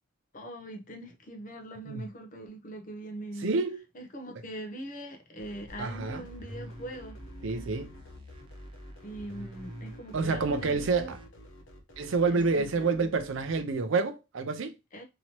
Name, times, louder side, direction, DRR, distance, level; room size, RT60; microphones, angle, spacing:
voice 1, 0.3-3.6 3.9-7.2 9.0-11.1 12.3-13.1 14.9-15.0, right 1 dB, 40° left, 0.6 m, -42 dB
voice 2, 3.4-3.8 5.8-6.2 7.4-7.9 10.1-11.2 12.0-14.8, right 4 dB, 75° right, 0.5 m, -28 dB
sound 1, 5.4-13.7, left 1 dB, 85° left, 0.9 m, -51 dB
sound 2, 5.7-11.3, right 1 dB, 25° right, 0.5 m, -46 dB
2.9 x 2.8 x 2.8 m
head